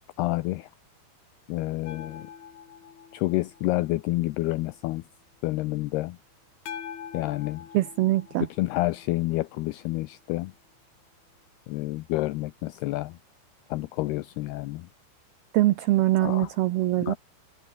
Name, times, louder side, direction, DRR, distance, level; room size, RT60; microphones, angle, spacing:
voice 1, 0.2-0.7 1.5-2.3 3.1-5.0 5.4-6.2 7.1-7.7 8.6-10.5 11.7-13.2 13.7-14.9 16.2-16.5 17.1-17.2, left 19 dB, 80° left, 2.5 m, -29 dB
sound 1, 1.9-4.7 6.7-9.9 12.7-12.8, left 8 dB, 60° left, 4.9 m, -44 dB
voice 2, 7.7-8.5 15.5-17.2, right 16 dB, 75° right, 2.6 m, -23 dB
omnidirectional pair, 5.1 m